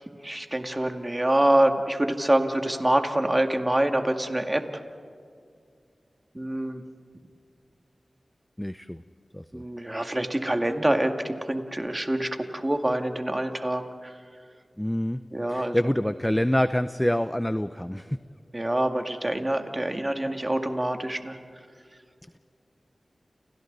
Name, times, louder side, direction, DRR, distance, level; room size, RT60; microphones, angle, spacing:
voice 1, 0.0-4.8 6.3-6.8 9.5-14.1 15.3-15.8 18.5-21.4, right 1 dB, 25° right, 5 dB, 2.1 m, -26 dB
voice 2, 8.6-9.0 9.3-9.6 14.8-15.2 15.5-18.2, equal, 10° left, 12 dB, 0.6 m, -26 dB
30.0 x 29.5 x 4.1 m, 2.3 s
cardioid pair, 50°, 0 cm